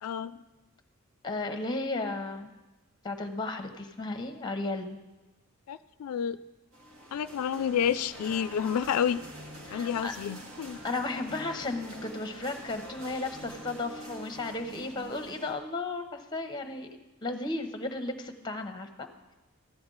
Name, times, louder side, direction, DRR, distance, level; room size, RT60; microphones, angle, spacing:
voice 1, 0.0-0.4 5.7-6.4 7.1-9.2 9.7-10.8, left 8 dB, 80° left, 13 dB, 0.3 m, -30 dB
voice 2, 1.2-2.5 3.0-5.0 9.7-10.1 10.8-16.9 17.2-19.1, left 2 dB, 20° left, 7 dB, 0.8 m, -34 dB
sound 1, 6.7-15.5, equal, 65° right, 1.9 m, -45 dB
14.5 x 9.6 x 3.9 m, 1.1 s
head